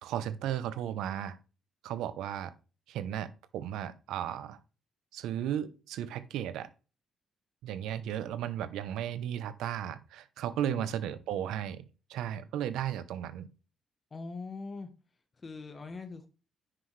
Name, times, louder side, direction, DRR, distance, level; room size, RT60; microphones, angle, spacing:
voice 1, 0.0-1.4 1.8-2.5 2.9-4.6 5.1-6.7 7.6-11.8 12.1-13.5, right 10 dB, 90° right, 14 dB, 0.8 m, -35 dB
voice 2, 14.1-14.9 15.4-16.3, left 3 dB, 35° left, 8 dB, 1.2 m, -41 dB
9.8 x 5.9 x 3.3 m, 0.33 s
cardioid pair, 90°, 0 cm